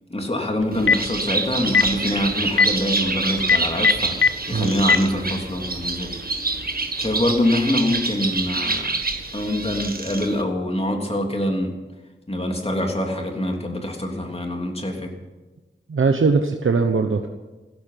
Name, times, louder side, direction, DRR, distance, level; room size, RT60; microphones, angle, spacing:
voice 1, 0.1-6.2 7.0-8.9 9.3-11.7 12.3-15.1, left 1 dB, 30° left, 2 dB, 3.2 m, -25 dB
Telephone, 0.6-1.1 1.6-1.9 2.5-2.7 3.4-4.3 4.8-5.0, left 5 dB, 75° left, 0.8 m, -15 dB
Bird, 0.7-10.4, right 3 dB, 50° right, 1.6 m, -27 dB
voice 2, 15.9-17.3, right 4 dB, 85° right, 5 dB, 1.0 m, -20 dB
16.0 x 14.0 x 5.8 m, 1.2 s
wide cardioid pair, 65°, 20 cm